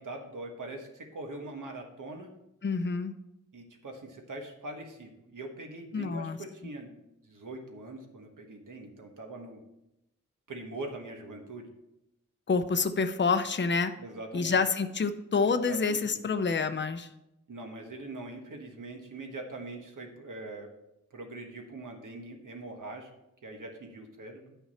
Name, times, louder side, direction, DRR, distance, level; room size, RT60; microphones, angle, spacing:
voice 1, 0.0-2.3 3.5-9.6 10.5-11.7 14.0-14.6 15.6-16.2 17.5-20.7 21.1-23.1 23.4-24.5, right 2 dB, 80° right, 3 dB, 1.5 m, -42 dB
voice 2, 2.6-3.1 5.9-6.4 12.5-13.9 14.3-17.1, left 4 dB, 35° left, 9 dB, 0.6 m, -27 dB
10.5 x 5.7 x 4.3 m, 0.88 s
wide cardioid pair, 90°, 31 cm